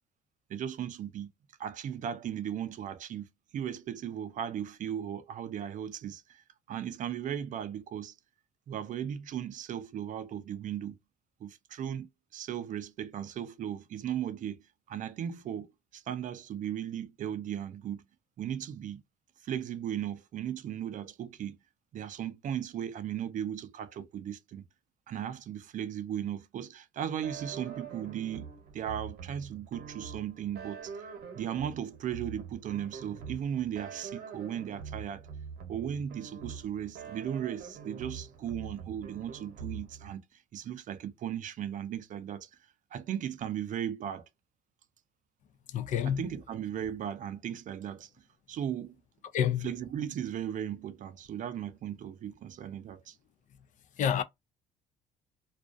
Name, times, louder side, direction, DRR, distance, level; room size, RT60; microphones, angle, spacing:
voice 1, 0.5-1.3 1.6-3.3 3.5-8.1 8.7-11.0 11.4-14.6 14.9-18.0 18.4-19.0 19.4-21.6 21.9-24.6 25.1-30.9 31.3-35.3 35.7-42.5 42.9-44.3 46.0-48.1 48.5-49.0 49.6-53.2, right 9 dB, 50° right, 0.5 m, -37 dB
sound 1, 27.2-40.1, right 6 dB, 65° right, 0.9 m, -44 dB
voice 2, 45.7-46.2 49.3-49.7 54.0-54.2, left 9 dB, 50° left, 0.4 m, -27 dB
2.3 x 2.2 x 2.4 m
cardioid pair, 110°, 17 cm